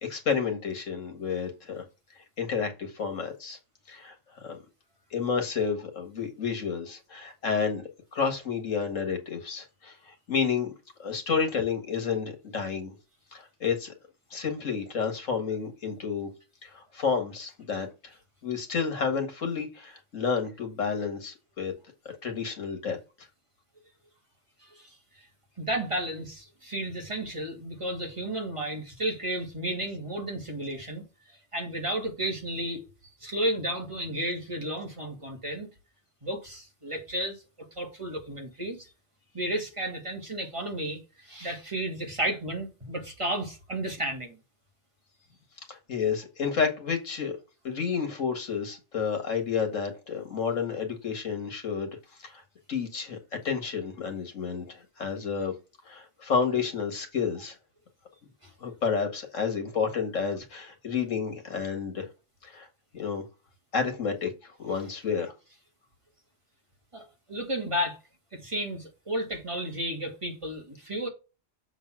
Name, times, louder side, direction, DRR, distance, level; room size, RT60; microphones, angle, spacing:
voice 1, 0.0-1.8 2.4-3.6 3.9-4.2 4.4-4.6 5.1-10.7 11.0-12.9 13.3-13.9 14.3-16.3 16.6-17.9 18.4-21.7 22.2-23.0 45.7-47.3 47.6-51.9 52.2-52.4 52.7-55.5 55.9-57.6 58.6-62.1 62.4-62.7 62.9-63.2 63.7-64.3 64.6-65.3, left 6 dB, 85° left, 2.1 m, -30 dB
voice 2, 25.6-31.0 31.5-32.9 33.2-35.7 36.2-37.4 37.8-38.9 39.3-44.4 66.9-68.0 68.3-71.1, right 1 dB, 25° right, 2.1 m, -32 dB
7.0 x 4.0 x 6.1 m
omnidirectional pair, 1.3 m